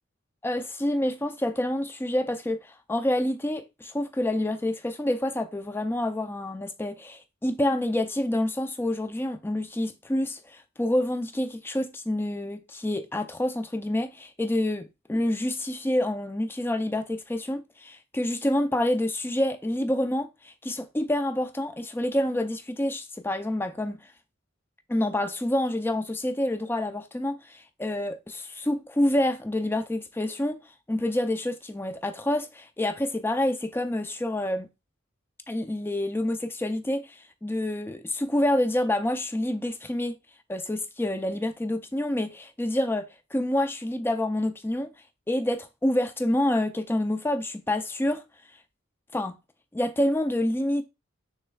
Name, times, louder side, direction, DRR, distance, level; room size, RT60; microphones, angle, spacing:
voice 1, 0.4-24.0 24.9-30.6 30.9-34.7 35.5-40.2 40.5-44.9 45.3-48.2 49.1-49.3 49.7-50.8, left 1 dB, 10° left, 0.4 m, -27 dB
6.5 x 3.4 x 2.2 m
head